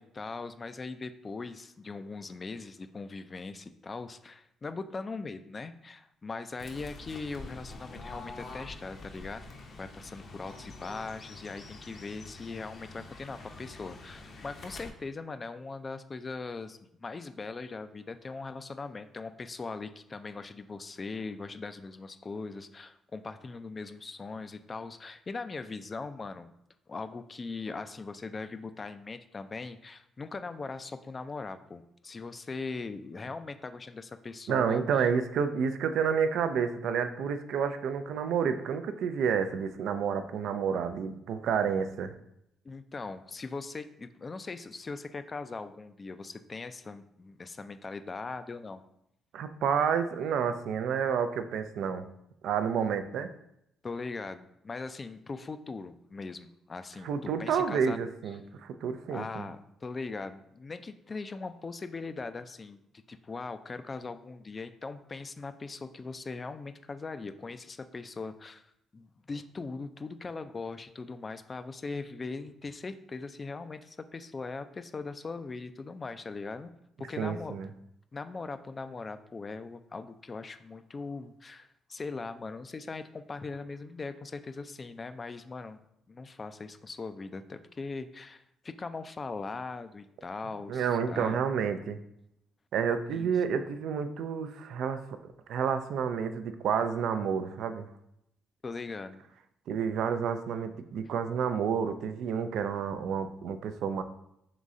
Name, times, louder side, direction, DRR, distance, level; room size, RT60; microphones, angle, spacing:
voice 1, 0.0-26.5 26.9-34.8 42.6-48.8 53.8-58.1 59.1-62.8 63.1-68.6 68.9-76.7 77.0-77.6 78.1-85.8 86.1-91.4 93.1-93.3 98.6-99.2, left 4 dB, 35° left, 11 dB, 0.3 m, -40 dB
Fowl / Bird, 6.6-14.9, left 3 dB, 55° left, 0.7 m, -46 dB
voice 2, 34.5-42.1 49.3-52.1 52.4-53.3 57.0-59.5 77.2-77.7 90.7-92.0 92.7-95.0 95.5-97.9 99.7-104.0, right 7 dB, 75° right, 9 dB, 0.3 m, -30 dB
3.8 x 3.1 x 3.6 m, 0.78 s
supercardioid pair, 70°, 0 cm